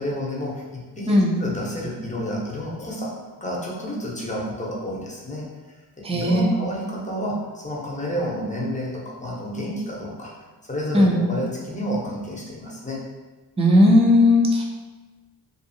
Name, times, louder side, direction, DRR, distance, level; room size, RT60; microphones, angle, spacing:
voice 1, 0.0-3.1 3.4-5.5 6.1-10.3 10.7-13.0, equal, 20° left, -4 dB, 0.8 m, -30 dB
voice 2, 6.0-6.5 10.9-11.2 13.6-14.6, left 1 dB, 15° right, -2 dB, 0.5 m, -16 dB
2.6 x 2.4 x 2.7 m, 1.3 s
cardioid pair, 65°, 41 cm